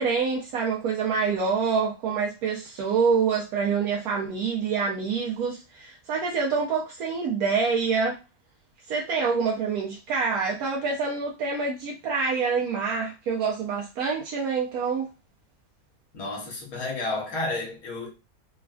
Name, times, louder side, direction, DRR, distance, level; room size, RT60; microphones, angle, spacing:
voice 1, 0.0-8.2 8.9-15.1, right 5 dB, 80° right, 1.1 m, -26 dB
voice 2, 16.1-18.1, left 2 dB, 75° left, 1.3 m, -31 dB
3.2 x 2.4 x 2.3 m
omnidirectional pair, 1.5 m